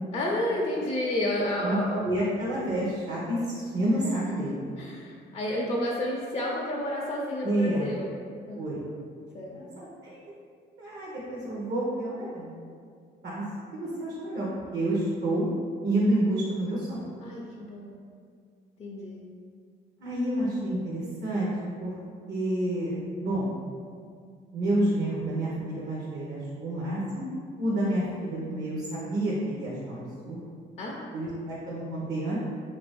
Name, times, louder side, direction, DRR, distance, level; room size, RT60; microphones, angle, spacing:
voice 1, 0.1-2.0 4.8-8.1 8.5-8.6 9.3-9.6 17.2-18.0 18.8-19.2 30.8-31.1, left 1 dB, 35° left, -3 dB, 0.5 m, -30 dB
voice 2, 2.0-4.8 7.4-7.9 8.5-8.9 9.5-10.3 10.8-12.5 13.2-13.4 13.7-15.5 15.8-17.1 20.0-21.5 21.8-21.9 22.3-23.6 24.5-27.3 27.6-30.4 31.1-32.4, right 1 dB, 55° right, -6 dB, 0.8 m, -29 dB
3.3 x 2.6 x 3.5 m, 2.1 s
cardioid pair, 90°, 20 cm